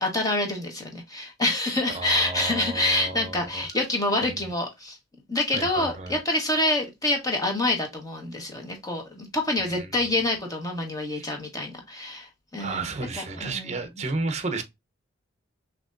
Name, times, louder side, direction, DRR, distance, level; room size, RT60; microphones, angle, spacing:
voice 1, 0.0-5.0 5.3-12.9 13.2-13.8, left 2 dB, 20° left, 1.3 m, -27 dB
voice 2, 1.9-3.6 4.2-4.5 5.5-6.2 9.6-10.1 11.1-11.3 12.6-14.6, right 3 dB, 35° right, 0.7 m, -33 dB
6.0 x 2.9 x 2.5 m
head